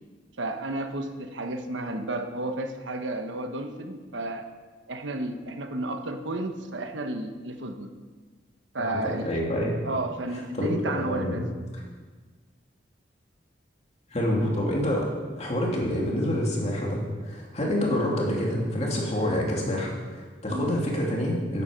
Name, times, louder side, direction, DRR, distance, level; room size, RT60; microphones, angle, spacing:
voice 1, 0.4-4.5 4.9-7.9 8.7-9.3 9.8-11.5 20.5-20.7, right 2 dB, 80° right, 6 dB, 1.1 m, -32 dB
voice 2, 8.8-9.8 10.5-11.4 14.1-15.1 15.4-21.6, left 1 dB, 35° left, -2 dB, 2.9 m, -27 dB
13.5 x 11.0 x 5.3 m, 1.4 s
head